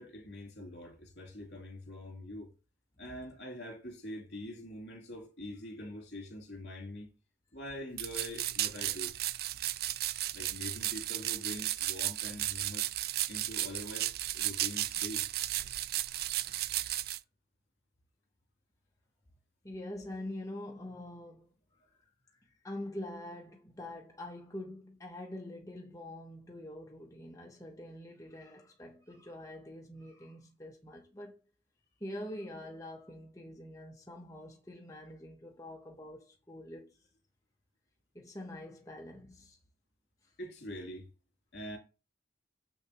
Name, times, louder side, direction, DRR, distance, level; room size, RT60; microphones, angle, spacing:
voice 1, 0.0-2.5 3.0-7.1 7.5-9.2 10.3-12.9 13.3-15.2 40.4-41.1 41.5-41.8, left 1 dB, 70° left, 2.7 m, -44 dB
sound 1, 8.0-17.2, right 14 dB, 60° right, 0.3 m, -34 dB
voice 2, 19.6-21.5 22.4-31.4 32.0-37.0 38.1-39.6 40.2-40.3, left 1 dB, 20° left, 0.8 m, -45 dB
6.9 x 6.4 x 2.9 m
head